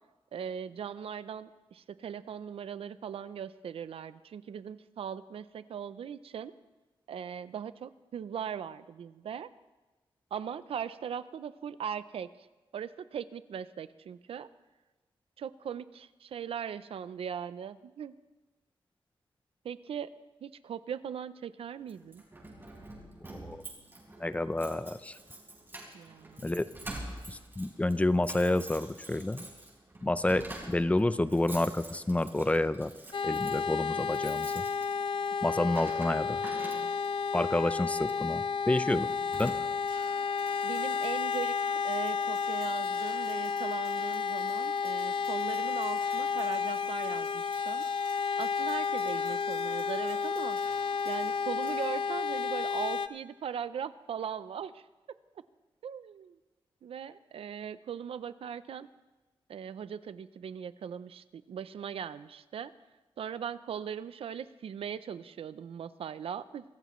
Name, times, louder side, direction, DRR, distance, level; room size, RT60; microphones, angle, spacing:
voice 1, 0.3-6.5 7.1-9.5 10.3-12.3 12.7-14.5 15.4-18.1 19.6-20.1 20.4-22.2 25.9-26.5 40.6-47.8 48.4-50.6 51.0-54.8 55.8-56.4 56.8-58.9 59.5-62.7 63.2-66.6, right 8 dB, 85° right, 14 dB, 0.6 m, -39 dB
Keys jangling, 21.9-37.2 38.0-38.3 38.7-38.8 39.1-40.0, right 2 dB, 25° right, 4.4 m, -47 dB
voice 2, 23.3-23.6 24.2-25.2 26.4-26.6 27.3-29.5 30.0-32.9 33.2-34.6 35.4-36.4 37.3-39.1 39.4-39.5, left 2 dB, 15° left, 13 dB, 0.5 m, -29 dB
sound 1, 33.1-53.1, left 6 dB, 55° left, 0.6 m, -31 dB
sound 2, 39.9-52.3, right 3 dB, 65° right, 3.1 m, -54 dB
25.0 x 15.0 x 3.1 m, 1.2 s
wide cardioid pair, 135°, 9 cm